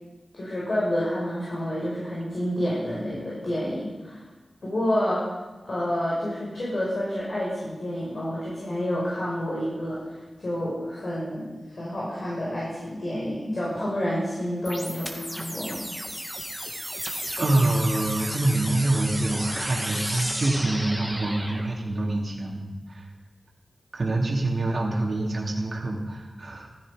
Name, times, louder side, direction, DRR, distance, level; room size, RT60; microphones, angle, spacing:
voice 1, 0.3-4.2 4.6-5.3 5.6-15.9, equal, 60° left, -6 dB, 5.7 m, -29 dB
sound 1, 14.6-21.6, equal, ahead, 2.5 m, -33 dB
voice 2, 17.4-23.1 23.9-26.7, right 2 dB, 55° right, -3 dB, 2.9 m, -26 dB
15.0 x 14.0 x 5.3 m, 1.2 s
cardioid pair, 50°, 0 cm